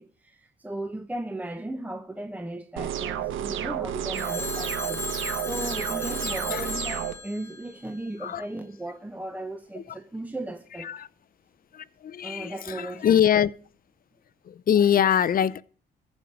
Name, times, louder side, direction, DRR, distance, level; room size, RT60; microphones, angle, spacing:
voice 1, 0.0-5.0 5.4-10.9 12.2-13.2, right 1 dB, 10° right, 1.0 m, -36 dB
sound 1, 2.8-7.1, right 10 dB, 80° right, 1.2 m, -31 dB
Telephone, 4.1-8.4, left 3 dB, 15° left, 1.6 m, -35 dB
voice 2, 6.2-6.7 8.2-8.4 9.7-9.8 10.8-11.1 11.7-13.5 14.4-15.6, left 9 dB, 45° left, 0.6 m, -24 dB
14.5 x 5.5 x 7.5 m
cardioid pair, 90°, 20 cm